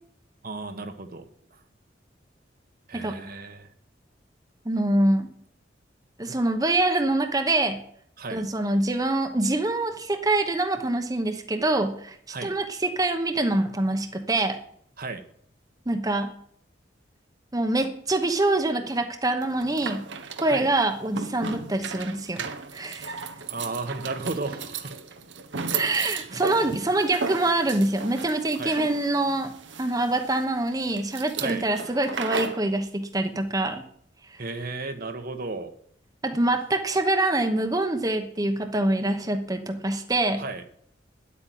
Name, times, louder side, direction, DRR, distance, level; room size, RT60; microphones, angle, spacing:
voice 1, 0.4-1.6 2.9-3.7 8.2-8.4 12.3-12.5 15.0-15.2 20.5-20.7 23.5-24.9 26.3-26.4 28.6-28.7 31.4-31.6 34.4-35.7 40.4-40.8, right 3 dB, 50° right, 7 dB, 1.2 m, -34 dB
voice 2, 4.6-5.3 6.2-7.8 8.3-14.6 15.9-16.3 17.5-20.1 20.4-22.5 22.7-23.2 25.7-29.5 29.8-33.8 36.2-40.4, right 2 dB, 20° right, 6 dB, 1.0 m, -25 dB
sound 1, 19.4-32.7, right 5 dB, 80° right, 1.1 m, -35 dB
10.5 x 8.5 x 9.3 m, 0.64 s
head